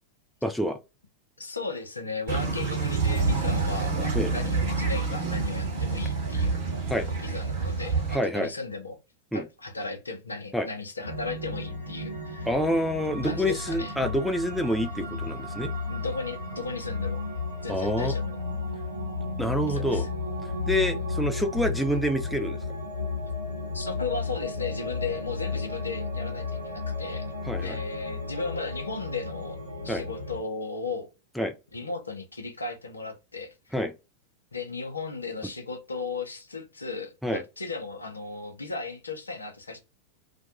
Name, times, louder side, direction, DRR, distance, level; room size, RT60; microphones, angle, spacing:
voice 1, 0.4-0.8 4.1-4.3 6.9-7.1 8.1-8.5 9.3-9.4 10.5-10.7 12.5-15.7 17.7-18.1 19.4-20.1 20.4-22.6 27.5-27.8 29.9-30.0 31.4-31.5 33.7-33.9 37.2-37.4, equal, ahead, 0.4 m, -27 dB
voice 2, 1.4-6.6 7.2-9.0 9.3-12.5 13.2-13.9 15.9-17.3 17.6-18.4 18.7-18.8 19.6-20.1 23.7-27.2 27.6-31.1 31.7-33.7 34.5-39.8, left 4 dB, 80° left, 0.7 m, -36 dB
sound 1, 2.3-8.2, right 4 dB, 50° right, 1.0 m, -27 dB
sound 2, 11.0-30.4, left 3 dB, 90° right, 0.9 m, -33 dB
2.5 x 2.2 x 2.6 m
figure-of-eight pair, 90°, 0 cm